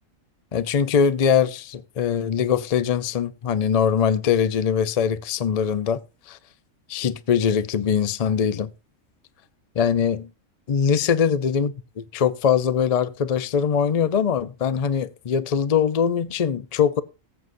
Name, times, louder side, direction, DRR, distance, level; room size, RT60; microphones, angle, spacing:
voice 1, 0.5-6.0 6.3-6.4 6.9-8.7 9.8-10.3 10.7-11.7 12.1-17.0, left 7 dB, 40° left, 0.5 m, -22 dB
19.0 x 8.1 x 2.6 m
omnidirectional pair, 1.4 m